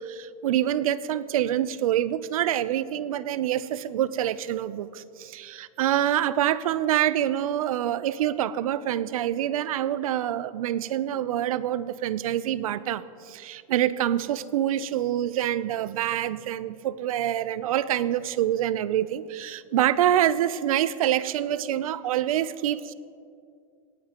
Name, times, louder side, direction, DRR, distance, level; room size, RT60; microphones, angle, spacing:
voice 1, 0.0-22.9, right 11 dB, 80° right, 17 dB, 0.6 m, -26 dB
18.5 x 14.5 x 3.0 m, 2.4 s
supercardioid pair, 180°, 18 cm